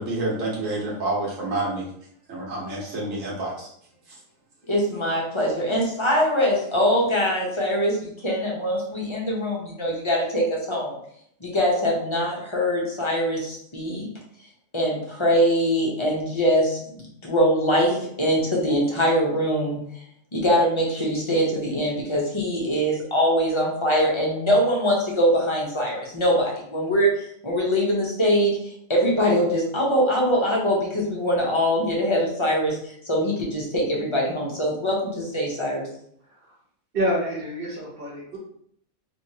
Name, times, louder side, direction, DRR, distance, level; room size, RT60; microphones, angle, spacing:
voice 1, 0.0-1.9 2.3-3.7 4.1-4.2, right 2 dB, 65° right, -5 dB, 1.5 m, -28 dB
voice 2, 4.7-10.9 11.4-14.1 14.7-19.8 20.3-35.9, equal, 30° left, -3 dB, 0.7 m, -23 dB
voice 3, 36.9-38.4, equal, 45° right, -3 dB, 1.3 m, -27 dB
3.1 x 3.0 x 2.8 m, 0.68 s
omnidirectional pair, 1.4 m